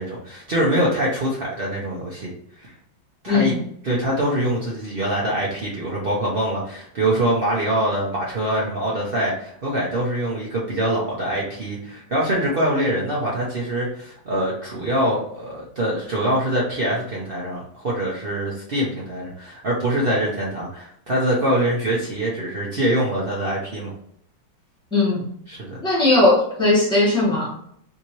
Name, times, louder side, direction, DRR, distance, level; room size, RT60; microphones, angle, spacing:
voice 1, 0.0-2.3 2.6-2.7 3.2-3.5 3.8-23.9 25.5-25.8, right 1 dB, 85° right, -5 dB, 0.5 m, -24 dB
voice 2, 3.3-3.6 24.9-25.2 25.8-27.5, left 2 dB, 5° left, -5 dB, 0.9 m, -18 dB
3.6 x 2.8 x 3.0 m, 0.69 s
omnidirectional pair, 2.3 m